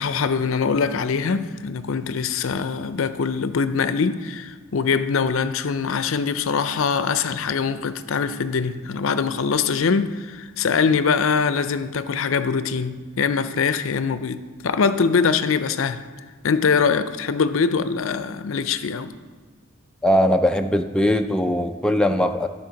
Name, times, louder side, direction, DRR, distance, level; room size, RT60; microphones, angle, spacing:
voice 1, 0.0-16.0 16.4-19.1, left 5 dB, 70° left, 0.5 m, -23 dB
voice 2, 20.0-22.5, equal, 5° left, 0.3 m, -20 dB
12.0 x 4.6 x 5.8 m
head